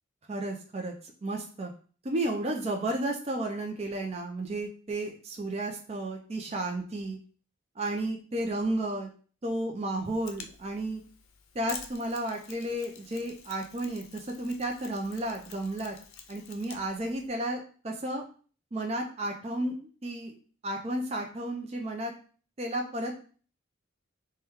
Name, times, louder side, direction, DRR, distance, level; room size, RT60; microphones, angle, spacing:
voice 1, 0.3-0.9 1.2-1.7 2.0-7.2 7.8-9.1 9.4-11.0 11.5-16.0 16.3-18.2 18.7-19.7 20.0-20.3 20.6-22.1 22.6-23.2, right 1 dB, 30° right, 2 dB, 0.4 m, -32 dB
Mechanisms, 10.0-17.3, left 7 dB, 85° left, 0.5 m, -49 dB
4.4 x 2.2 x 3.5 m, 0.41 s
head